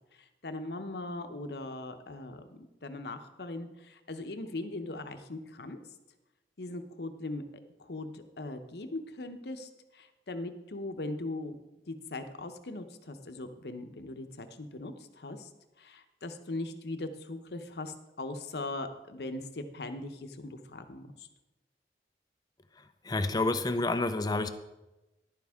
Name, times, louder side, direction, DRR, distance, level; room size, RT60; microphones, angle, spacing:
voice 1, 0.1-5.8 6.6-7.4 7.8-11.6 11.9-15.5 15.8-21.3, left 2 dB, 65° left, 8 dB, 0.8 m, -40 dB
voice 2, 22.8-24.5, left 2 dB, 20° left, 10 dB, 0.5 m, -29 dB
11.0 x 9.4 x 3.6 m, 1.0 s
head